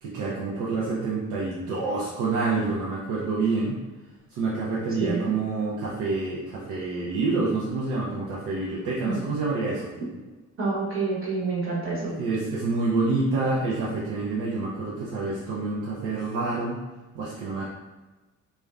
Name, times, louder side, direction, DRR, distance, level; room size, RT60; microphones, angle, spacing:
voice 1, 0.0-3.8 4.3-9.9 12.0-16.8 17.1-17.6, right 3 dB, 90° right, -7 dB, 0.6 m, -27 dB
voice 2, 5.0-5.3 10.6-12.1, right 4 dB, 45° right, -5 dB, 1.1 m, -27 dB
3.3 x 2.1 x 2.3 m, 1.2 s
cardioid pair, 90°, 30 cm